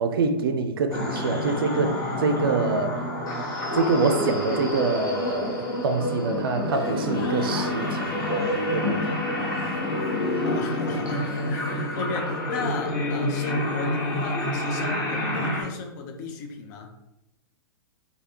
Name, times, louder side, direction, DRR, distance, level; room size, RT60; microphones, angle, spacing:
voice 1, 0.0-3.0 3.7-9.2, right 4 dB, 65° right, 7 dB, 0.4 m, -26 dB
sound 1, 0.9-15.6, left 1 dB, 25° left, 1.1 m, -28 dB
sound 2, 6.7-11.7, left 1 dB, 85° left, 0.7 m, -40 dB
voice 2, 10.4-16.9, left 4 dB, 45° left, 3 dB, 0.6 m, -35 dB
3.2 x 2.2 x 2.8 m, 0.92 s
hypercardioid pair, 110°, 13 cm